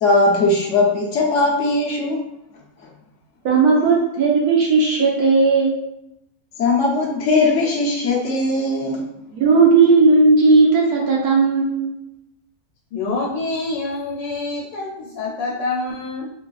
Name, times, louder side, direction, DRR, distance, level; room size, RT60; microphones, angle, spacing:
voice 1, 0.0-2.2 6.6-9.0, left 2 dB, 65° left, -2 dB, 0.7 m, -19 dB
voice 2, 3.4-5.7 9.3-11.9, right 4 dB, 70° right, -2 dB, 1.0 m, -15 dB
voice 3, 12.9-16.3, left 3 dB, 80° left, -4 dB, 1.2 m, -26 dB
3.9 x 2.3 x 2.3 m, 0.83 s
omnidirectional pair, 1.9 m